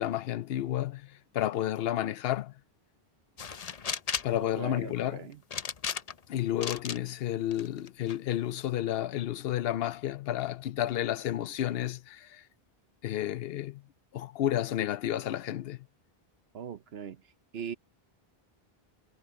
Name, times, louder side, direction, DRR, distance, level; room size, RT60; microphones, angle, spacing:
voice 1, 0.0-2.5 4.2-5.3 6.3-12.4 13.0-13.8 14.1-15.9, left 12 dB, 70° left, 0.8 m, -31 dB
sound 1, 3.4-4.4 5.5-6.3 6.6-7.0 7.5-8.2, left 6 dB, 40° left, 0.7 m, -35 dB
voice 2, 4.5-5.4 16.5-17.2 17.5-17.7, right 7 dB, 75° right, 1.0 m, -40 dB
omnidirectional pair, 1.1 m